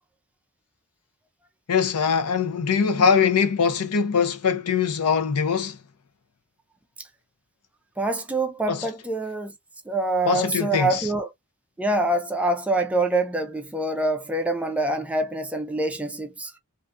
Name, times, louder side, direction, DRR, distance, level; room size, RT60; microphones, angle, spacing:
voice 1, 1.7-5.8 8.7-8.9 10.3-11.1, left 6 dB, 80° left, 0.6 m, -22 dB
voice 2, 8.0-9.5 9.9-11.3 11.8-16.5, right 2 dB, 5° right, 0.3 m, -25 dB
2.5 x 2.3 x 2.5 m
head